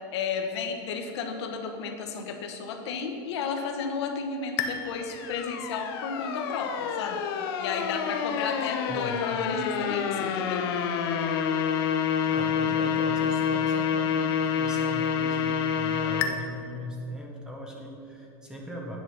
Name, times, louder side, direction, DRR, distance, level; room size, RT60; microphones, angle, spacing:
voice 1, 0.1-7.2 7.6-10.7, left 5 dB, 75° left, 4 dB, 1.1 m, -33 dB
sound 1, 4.6-16.3, left 7 dB, 60° left, 0.7 m, -28 dB
voice 2, 8.9-9.2 12.2-19.0, left 1 dB, 5° right, -1 dB, 0.9 m, -40 dB
9.2 x 6.3 x 5.5 m, 2.6 s
supercardioid pair, 175°, 14 cm